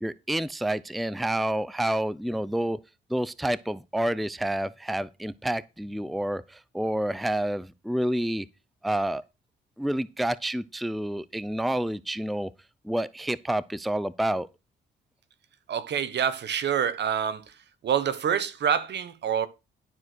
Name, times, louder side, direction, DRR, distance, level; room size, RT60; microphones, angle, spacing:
voice 1, 0.0-2.8 3.1-8.5 8.8-9.2 9.8-12.5 12.8-14.5, right 1 dB, ahead, 0.5 m, -29 dB
voice 2, 15.7-17.4 17.8-19.5, right 8 dB, 60° right, 1.4 m, -26 dB
12.0 x 4.8 x 6.3 m
cardioid pair, 90°, 20 cm